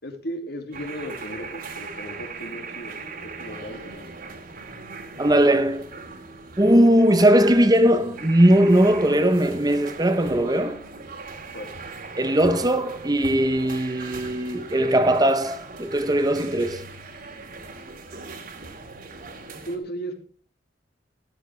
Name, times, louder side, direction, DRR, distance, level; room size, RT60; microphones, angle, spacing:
voice 1, 0.0-4.1 11.5-11.7 19.7-20.3, equal, 60° left, 2.8 m, -36 dB
sound 1, 0.7-19.8, right 3 dB, 50° right, 2.5 m, -39 dB
voice 2, 5.2-5.9 6.6-10.8 12.2-16.9, right 1 dB, 20° right, 1.0 m, -19 dB
13.5 x 13.0 x 3.4 m
head